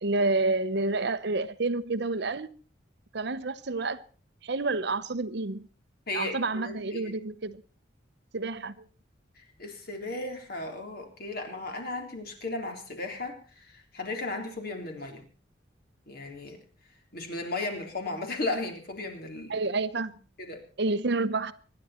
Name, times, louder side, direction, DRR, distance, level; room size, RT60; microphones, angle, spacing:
voice 1, 0.0-2.5 3.1-4.0 4.4-5.7 6.1-7.6 8.3-8.9 19.5-20.1 20.8-21.5, right 3 dB, 60° right, 0.8 m, -29 dB
voice 2, 6.1-7.1 9.6-15.2 16.1-16.6 17.1-19.5 20.4-20.6, left 2 dB, 55° left, 3.8 m, -35 dB
25.0 x 10.5 x 4.4 m
head